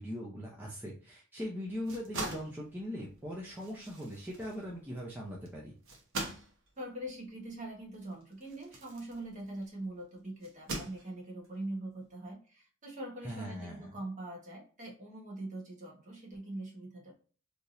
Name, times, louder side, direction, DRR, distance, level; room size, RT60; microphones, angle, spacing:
voice 1, 0.0-5.7 13.2-13.9, equal, 10° right, -4 dB, 0.6 m, -40 dB
sound 1, 1.7-9.8 10.4-11.5, right 2 dB, 60° right, 1.0 m, -44 dB
voice 2, 6.8-17.1, right 1 dB, 35° right, -1 dB, 1.3 m, -43 dB
3.5 x 2.8 x 2.6 m, 0.39 s
head